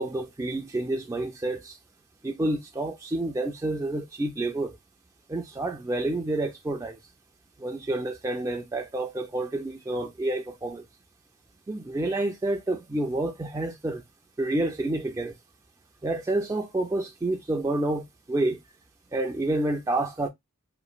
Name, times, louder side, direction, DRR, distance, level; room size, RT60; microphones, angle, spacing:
voice 1, 0.0-1.8 2.2-4.8 5.3-7.0 7.6-10.8 11.7-14.0 14.4-15.3 16.0-18.6 19.1-20.3, right 2 dB, 15° right, 0.3 m, -29 dB
3.0 x 2.5 x 2.2 m
head